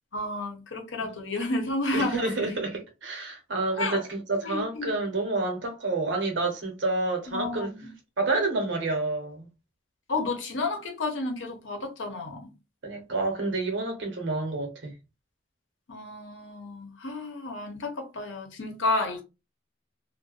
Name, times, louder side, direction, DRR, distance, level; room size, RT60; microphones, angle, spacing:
voice 1, 0.1-2.6 3.8-4.0 4.4-5.0 7.3-7.9 10.1-12.5 15.9-19.2, left 2 dB, 85° left, 0.8 m, -31 dB
voice 2, 1.9-7.7 8.2-9.5 12.8-14.9, right 2 dB, 80° right, 0.9 m, -29 dB
2.5 x 2.1 x 2.3 m
head